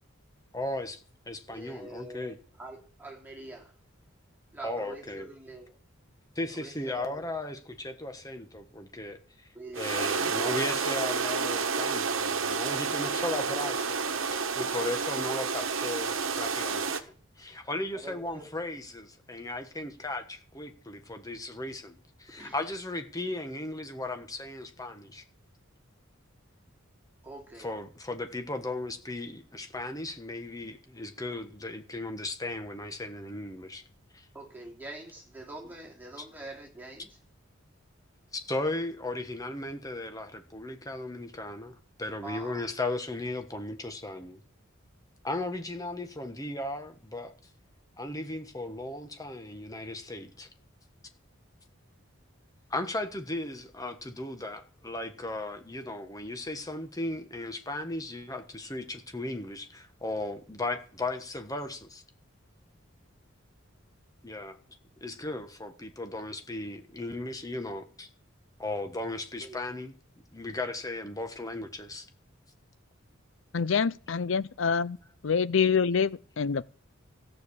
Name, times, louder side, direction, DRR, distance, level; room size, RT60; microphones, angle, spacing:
voice 1, 0.5-1.0 1.3-2.4 4.6-5.3 6.3-9.5 9.7-14.0 14.3-17.0 17.4-25.2 27.5-33.8 34.1-34.2 36.2-36.3 38.3-44.4 45.2-47.3 48.0-50.5 52.7-62.0 64.2-64.6 65.0-68.1 68.6-70.0 70.3-72.1, left 2 dB, 15° left, 1.4 m, -36 dB
voice 2, 1.5-3.7 4.5-5.8 6.5-7.3 9.5-10.6 14.8-15.0 17.9-18.5 22.4-22.6 27.2-27.8 34.3-37.2 42.2-42.7 69.4-69.6, right 2 dB, 10° right, 3.1 m, -45 dB
sound 1, 9.7-17.0, right 5 dB, 75° right, 1.3 m, -30 dB
voice 3, 73.5-75.0 75.2-76.6, left 6 dB, 65° left, 0.5 m, -26 dB
14.0 x 6.8 x 8.5 m
head